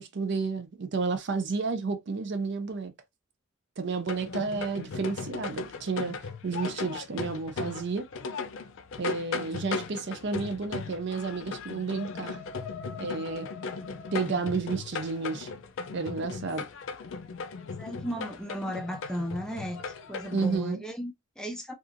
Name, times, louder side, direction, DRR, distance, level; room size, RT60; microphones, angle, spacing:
voice 1, 0.0-2.9 3.8-6.2 6.4-8.1 9.0-12.4 13.0-13.5 14.1-15.5 15.9-16.7 20.3-20.8, right 4 dB, 55° right, 0.5 m, -31 dB
sound 1, 4.1-20.6, left 4 dB, 65° left, 0.4 m, -37 dB
voice 2, 17.8-21.7, equal, 5° left, 0.4 m, -35 dB
2.7 x 2.4 x 2.5 m
head